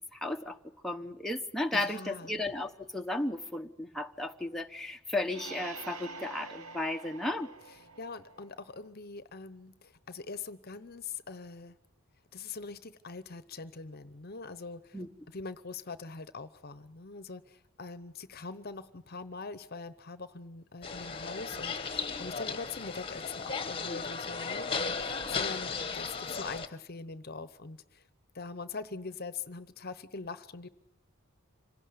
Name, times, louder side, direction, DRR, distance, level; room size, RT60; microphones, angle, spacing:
voice 1, 0.1-0.6 0.8-7.5 14.9-15.1, left 2 dB, ahead, 2 dB, 1.0 m, -34 dB
voice 2, 1.7-2.4 8.0-11.8 12.3-15.0 15.3-28.0 28.3-30.7, left 4 dB, 45° left, 14 dB, 0.9 m, -43 dB
sound 1, 5.3-8.9, right 4 dB, 90° right, 1.2 m, -47 dB
sound 2, 20.8-26.7, left 5 dB, 25° left, 1.3 m, -35 dB
26.5 x 17.5 x 9.6 m, 0.81 s
head